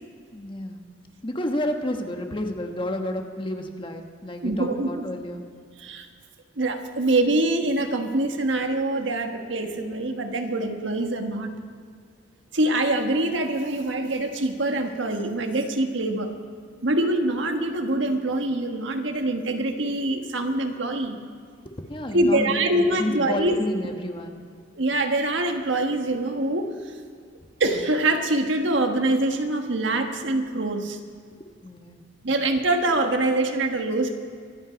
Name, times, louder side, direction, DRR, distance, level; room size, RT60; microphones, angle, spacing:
voice 1, 0.3-0.8 1.2-5.4 21.9-24.4 31.6-32.0, left 1 dB, 25° left, 4 dB, 1.2 m, -31 dB
voice 2, 4.4-4.9 5.8-6.1 6.6-11.5 12.5-16.3 16.8-21.2 22.1-23.6 24.7-26.7 27.6-31.0 32.2-34.1, right 2 dB, 80° right, 4 dB, 1.5 m, -24 dB
24.5 x 8.9 x 5.2 m, 2.1 s
head